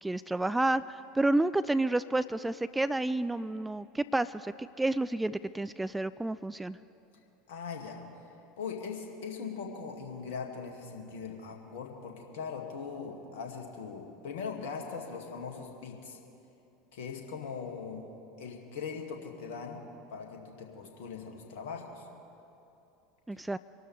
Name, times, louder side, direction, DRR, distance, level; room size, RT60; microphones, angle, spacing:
voice 1, 0.0-6.8 23.3-23.6, right 2 dB, 10° right, 15 dB, 0.3 m, -30 dB
voice 2, 7.5-8.0 8.6-16.2 16.9-18.0 18.4-19.8 20.1-22.1, left 5 dB, 60° left, 2 dB, 2.1 m, -40 dB
25.0 x 12.5 x 3.4 m, 2.9 s
figure-of-eight pair, 75°, 0 cm